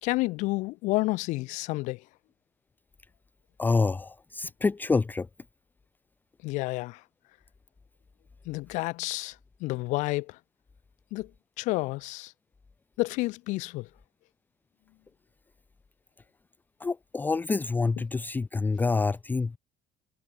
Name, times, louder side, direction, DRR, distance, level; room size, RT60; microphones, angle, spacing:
voice 1, 0.0-2.0 6.4-7.0 8.4-9.3 9.6-10.4 11.1-11.3 11.6-12.3 13.0-13.9, left 21 dB, 80° left, 3.4 m, -30 dB
voice 2, 3.6-5.3 16.8-19.6, left 4 dB, 15° left, 0.7 m, -27 dB
cardioid pair, 140°, 13 cm